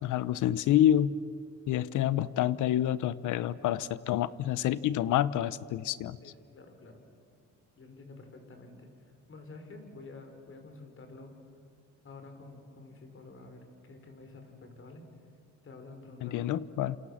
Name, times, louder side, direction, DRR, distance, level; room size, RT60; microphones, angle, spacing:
voice 1, 0.0-1.1 1.7-6.2 16.2-17.0, left 12 dB, 85° left, 17 dB, 0.9 m, -28 dB
voice 2, 6.2-7.0 7.8-11.3 12.0-15.0 15.6-16.5, left 3 dB, 45° left, 5 dB, 5.6 m, -49 dB
28.5 x 28.0 x 7.4 m, 2.3 s
cardioid pair, 90°, 30 cm